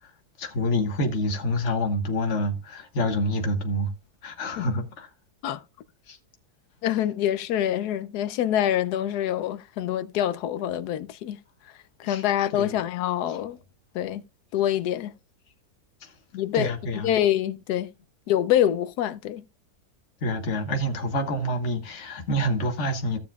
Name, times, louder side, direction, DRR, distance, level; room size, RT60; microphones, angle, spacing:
voice 1, 0.4-3.9 4.2-5.1 6.1-6.2 6.9-7.0 12.0-12.3 12.5-12.8 16.0-16.1 16.5-17.2 20.2-23.2, left 1 dB, 50° left, 1.6 m, -27 dB
voice 2, 6.8-11.4 12.0-13.6 13.9-14.2 14.5-15.1 16.3-17.9 18.3-19.4, left 11 dB, 80° left, 1.2 m, -25 dB
15.5 x 7.0 x 2.3 m
omnidirectional pair, 1.7 m